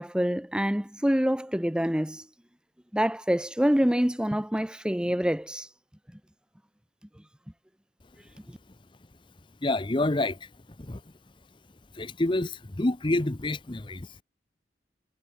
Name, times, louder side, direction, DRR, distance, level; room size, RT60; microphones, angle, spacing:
voice 1, 0.0-2.2 2.9-5.7, equal, 5° right, 0.7 m, -26 dB
voice 2, 9.6-10.5 10.8-11.0 11.9-14.2, left 2 dB, 25° left, 0.8 m, -28 dB
head